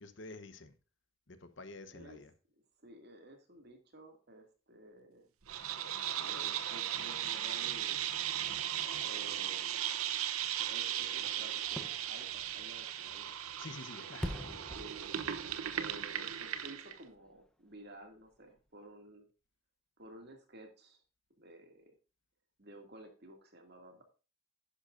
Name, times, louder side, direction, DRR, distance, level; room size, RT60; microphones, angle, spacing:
voice 1, 0.0-0.7 1.3-2.3 13.6-14.3, left 3 dB, 60° left, 0.9 m, -48 dB
voice 2, 1.9-2.2 2.8-5.3 6.2-8.0 9.0-9.9 10.6-13.3 14.0-15.1 15.8-19.3 20.0-21.0 21.4-22.0 22.6-24.0, right 1 dB, 50° right, 2.3 m, -53 dB
sound 1, 5.5-17.0, right 10 dB, 90° right, 0.8 m, -37 dB
Fireworks, 11.6-17.4 17.8-17.9, equal, 5° left, 0.7 m, -47 dB
10.5 x 10.5 x 2.5 m
head